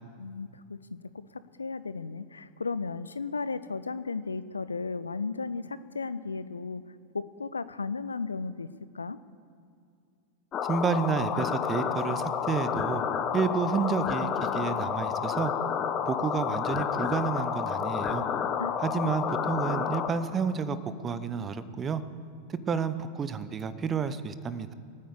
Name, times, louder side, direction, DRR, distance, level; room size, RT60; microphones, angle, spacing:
voice 1, 0.2-0.8 1.3-6.8 7.1-8.7 8.9-9.2 18.6-19.1, left 4 dB, 75° left, 15 dB, 0.5 m, -35 dB
sound 1, 10.5-20.1, left 7 dB, 30° left, 1.2 m, -30 dB
voice 2, 10.7-13.0 13.3-15.5 16.0-18.2 18.8-20.8 21.0-22.0 22.5-24.7, right 6 dB, 25° right, 14 dB, 0.9 m, -30 dB
20.5 x 9.4 x 6.9 m, 2.3 s
figure-of-eight pair, 90°, 0 cm